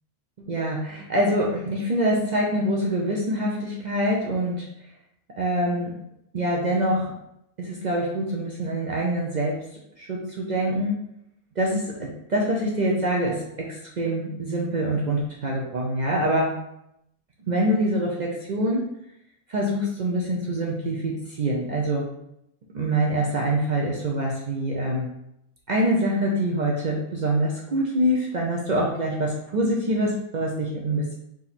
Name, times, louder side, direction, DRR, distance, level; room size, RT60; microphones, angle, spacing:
voice 1, 0.4-4.7 5.4-5.9 6.3-7.1 7.6-9.6 10.0-11.0 11.6-16.6 17.5-18.9 19.5-22.1 22.7-25.1 25.7-31.1, right 1 dB, 60° right, -3 dB, 0.4 m, -25 dB
3.8 x 2.9 x 4.1 m, 0.81 s
omnidirectional pair, 1.5 m